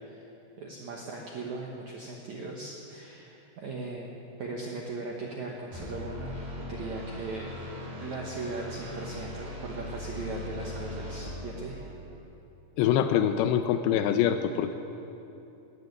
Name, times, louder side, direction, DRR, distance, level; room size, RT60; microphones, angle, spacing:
voice 1, 0.6-4.1 4.4-6.4 6.7-7.6 7.9-11.9, right 3 dB, 75° right, -1 dB, 1.7 m, -38 dB
sound 1, 5.7-12.2, left 1 dB, 50° right, 5.3 m, -40 dB
voice 2, 12.8-14.8, left 9 dB, 85° left, 9 dB, 2.7 m, -24 dB
14.5 x 9.6 x 9.5 m, 3.0 s
omnidirectional pair, 5.0 m